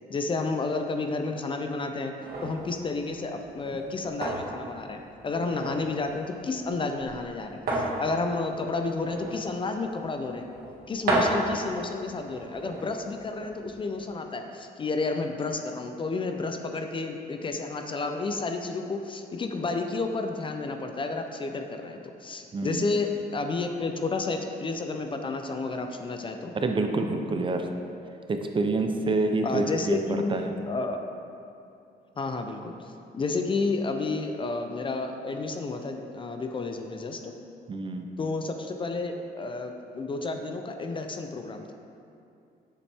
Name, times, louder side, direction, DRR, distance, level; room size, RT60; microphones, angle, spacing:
voice 1, 0.1-2.1 2.4-10.5 10.9-26.5 29.4-31.0 32.2-37.3 38.2-41.7, left 3 dB, 30° left, 5 dB, 0.5 m, -31 dB
sound 1, 2.2-14.0, right 1 dB, 65° right, 1.7 m, -34 dB
voice 2, 22.5-22.9 26.5-27.7 28.3-30.5 37.7-38.1, right 3 dB, 30° right, 5 dB, 0.5 m, -27 dB
7.1 x 7.1 x 3.4 m, 2.6 s
cardioid pair, 125°, 17 cm